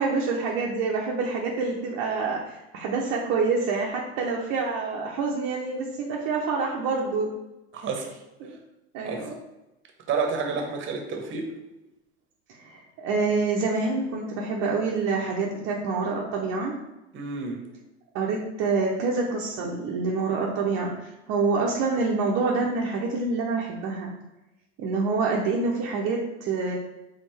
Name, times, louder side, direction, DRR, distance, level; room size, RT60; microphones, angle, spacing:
voice 1, 0.0-7.3 8.4-8.6 8.9-9.4 10.5-10.6 12.6-16.7 18.1-24.1 24.8-26.8, right 4 dB, 55° right, -2 dB, 0.8 m, -27 dB
voice 2, 7.7-8.1 9.0-9.2 10.1-11.5 17.1-17.6, right 5 dB, 35° right, 3 dB, 1.1 m, -29 dB
4.3 x 3.6 x 3.4 m, 0.98 s
hypercardioid pair, 85°, 32 cm